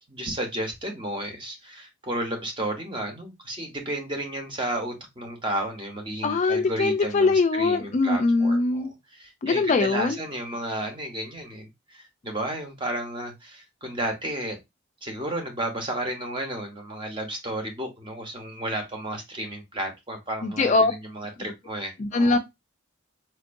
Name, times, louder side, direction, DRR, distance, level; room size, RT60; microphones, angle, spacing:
voice 1, 0.1-14.6 15.0-22.4, right 1 dB, 25° right, 0.9 m, -32 dB
voice 2, 6.2-8.9 9.4-10.2 20.4-20.9 22.0-22.4, left 3 dB, 35° left, 0.3 m, -22 dB
4.3 x 2.6 x 2.5 m
head